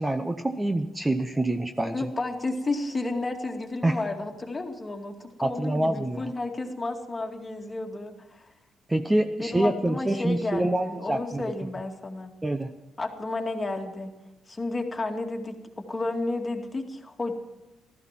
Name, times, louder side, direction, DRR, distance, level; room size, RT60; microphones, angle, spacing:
voice 1, 0.0-2.1 3.8-4.0 5.4-6.3 8.9-11.5 12.4-12.7, right 1 dB, 10° right, 7 dB, 0.8 m, -26 dB
voice 2, 1.9-8.5 9.4-12.3 13.0-14.1 14.5-17.3, left 2 dB, 25° left, 2 dB, 2.3 m, -32 dB
14.5 x 13.5 x 5.9 m, 0.99 s
cardioid pair, 90°, 0 cm